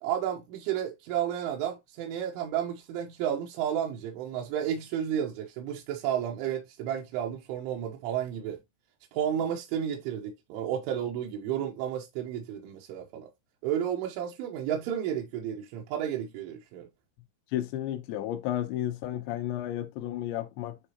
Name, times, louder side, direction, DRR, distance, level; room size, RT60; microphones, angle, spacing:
voice 1, 0.0-8.6 9.1-13.3 13.6-16.9, right 9 dB, 90° right, 3.5 m, -32 dB
voice 2, 17.5-20.8, left 12 dB, 80° left, 3.0 m, -32 dB
10.0 x 3.9 x 2.9 m
omnidirectional pair, 5.4 m